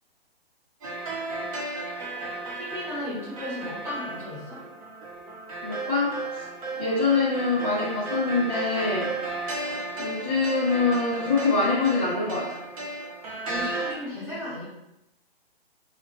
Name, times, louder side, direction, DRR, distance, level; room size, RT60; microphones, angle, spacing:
sound 1, 0.8-13.9, right 2 dB, 35° right, 0.8 m, -34 dB
voice 1, 2.5-4.6 13.4-14.7, left 1 dB, 10° right, -9 dB, 1.0 m, -35 dB
voice 2, 5.6-6.4 6.8-9.1 9.9-12.5, left 3 dB, 10° left, -12 dB, 0.3 m, -25 dB
4.0 x 2.1 x 2.8 m, 0.86 s
figure-of-eight pair, 125°, 30 cm